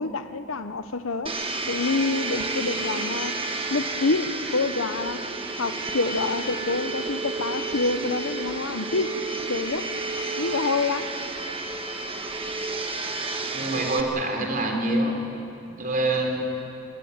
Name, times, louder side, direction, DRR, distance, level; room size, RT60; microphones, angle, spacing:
voice 1, 0.0-1.3 1.7-3.3 3.7-5.2 5.6-9.2 9.5-9.9 10.4-11.1, left 3 dB, 70° left, 11 dB, 0.9 m, -27 dB
Domestic sounds home sounds, 1.3-14.0, right 3 dB, 25° right, 1.5 m, -31 dB
voice 2, 13.5-15.2 15.8-16.5, right 2 dB, 45° right, 2 dB, 3.8 m, -25 dB
27.0 x 14.5 x 9.5 m, 2.7 s
head